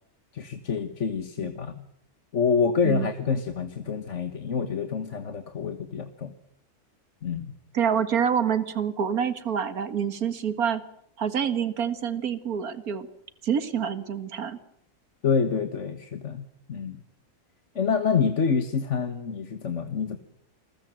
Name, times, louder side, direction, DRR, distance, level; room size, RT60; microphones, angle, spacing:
voice 1, 0.3-1.8 2.3-6.3 7.2-7.5 15.2-17.0 17.8-20.2, left 6 dB, 55° left, 8 dB, 1.7 m, -27 dB
voice 2, 7.7-10.8 11.2-13.1 13.4-14.6, right 8 dB, 75° right, 11 dB, 2.1 m, -27 dB
29.0 x 21.5 x 7.7 m, 0.72 s
omnidirectional pair, 1.5 m